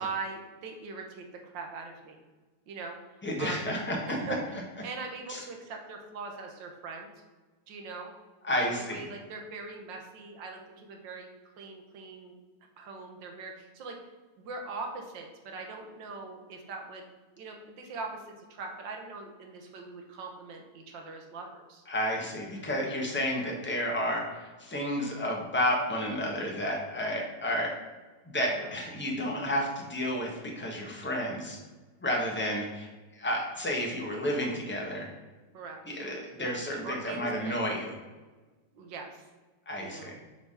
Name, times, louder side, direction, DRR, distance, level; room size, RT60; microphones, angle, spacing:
voice 1, 0.0-2.2 2.7-3.0 3.4-3.7 4.1-4.4 4.8-7.1 7.7-8.1 8.6-11.3 11.6-12.3 12.8-14.0 14.4-17.0 17.4-21.8 28.4-28.7 35.5-35.8 36.4-37.6 38.7-39.2 39.8-40.1, right 4 dB, 90° right, 2 dB, 1.6 m, -41 dB
voice 2, 3.2-4.2 4.5-4.6 5.3-5.4 8.4-9.0 21.9-27.7 28.3-31.6 32.0-32.9 33.1-35.1 35.9-37.9 39.7-40.2, equal, 10° left, -1 dB, 0.8 m, -31 dB
5.8 x 3.4 x 5.5 m, 1.3 s
omnidirectional pair, 1.9 m